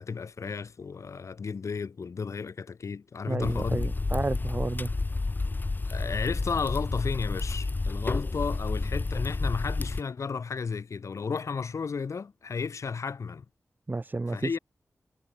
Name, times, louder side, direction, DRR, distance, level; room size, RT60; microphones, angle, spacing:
voice 1, 0.0-3.9 5.9-13.4 14.3-14.6, left 5 dB, 75° left, 6.7 m, -33 dB
voice 2, 3.3-4.9 13.9-14.6, right 3 dB, 35° right, 2.4 m, -31 dB
sound 1, 3.4-10.0, left 3 dB, 40° left, 1.1 m, -30 dB
cardioid pair, 60°, 5 cm